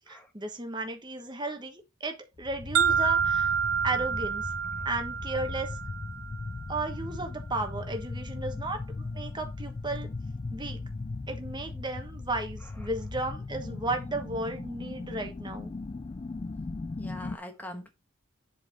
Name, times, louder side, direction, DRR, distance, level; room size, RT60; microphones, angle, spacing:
voice 1, 0.1-3.6 3.8-4.5 4.8-5.7 6.7-10.1 10.5-10.8 11.3-15.7, right 2 dB, 20° right, 1.2 m, -34 dB
sound 1, 2.4-17.4, left 3 dB, 25° left, 0.3 m, -38 dB
sound 2, 2.7-6.7, right 7 dB, 80° right, 0.6 m, -28 dB
voice 2, 17.0-17.9, left 1 dB, 10° left, 1.2 m, -44 dB
7.5 x 4.0 x 5.1 m
head